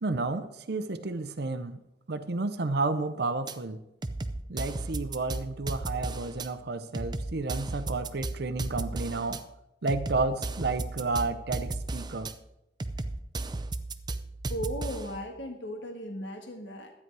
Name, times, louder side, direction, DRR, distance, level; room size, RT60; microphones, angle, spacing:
voice 1, 0.0-1.8 2.1-3.8 4.5-9.4 9.8-12.3, right 3 dB, 65° right, 10 dB, 0.7 m, -31 dB
sound 1, 3.5-3.6 4.0-6.5 6.9-9.4 9.9-12.3 12.8-15.2, right 2 dB, 25° right, 0.6 m, -35 dB
voice 2, 14.5-16.9, equal, 80° left, 4 dB, 1.5 m, -36 dB
12.5 x 9.6 x 4.7 m, 0.88 s
head